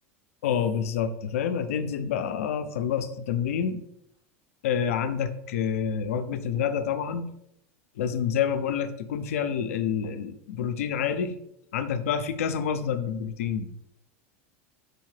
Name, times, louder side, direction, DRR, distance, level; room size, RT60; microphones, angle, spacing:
voice 1, 0.4-3.8 4.6-7.3 8.0-11.3 11.7-13.9, left 8 dB, 85° left, 9 dB, 0.4 m, -28 dB
4.0 x 2.7 x 3.1 m, 0.75 s
hypercardioid pair, 105°, 7 cm